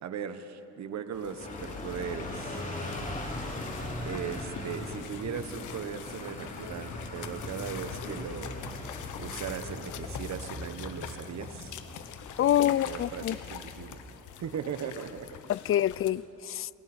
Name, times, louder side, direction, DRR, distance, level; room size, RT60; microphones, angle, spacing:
voice 1, 0.0-2.6 4.0-8.6 9.2-11.8 12.4-14.0 14.4-15.3, right 7 dB, 65° right, 1.4 m, -38 dB
sound 1, 1.1-16.1, left 9 dB, 75° left, 1.1 m, -45 dB
sound 2, 1.4-14.0, left 1 dB, 25° left, 3.3 m, -40 dB
voice 2, 12.4-13.4 15.5-16.7, left 12 dB, 45° left, 0.4 m, -26 dB
29.0 x 20.5 x 4.5 m
cardioid pair, 90°, 30 cm